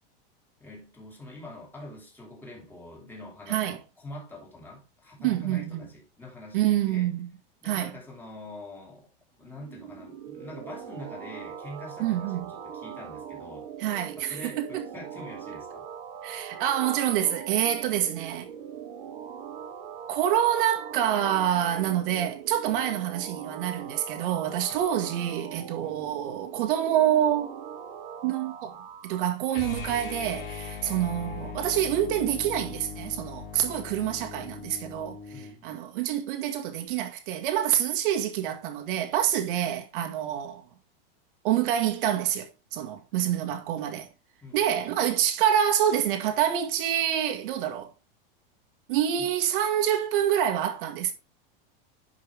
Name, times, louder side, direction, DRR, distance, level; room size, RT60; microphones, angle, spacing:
voice 1, 0.6-7.1 7.6-9.1 9.4-13.7 14.2-15.9 22.7-22.8 24.7-24.8 25.8-26.1 30.8-30.9 35.3-35.8 44.4-44.8 49.2-49.3, left 1 dB, 5° left, 3.0 m, -45 dB
voice 2, 5.2-5.9 6.5-7.3 7.7-7.9 12.0-12.5 13.8-14.9 16.2-18.5 20.1-27.5 28.2-28.8 29.0-40.6 41.4-44.1 44.5-47.9 48.9-51.1, right 10 dB, 65° right, 2.0 m, -27 dB
sound 1, 9.4-29.3, right 8 dB, 80° right, 1.7 m, -41 dB
sound 2, 29.5-35.6, left 5 dB, 75° left, 4.6 m, -39 dB
11.0 x 5.6 x 3.5 m
supercardioid pair, 160°, 29 cm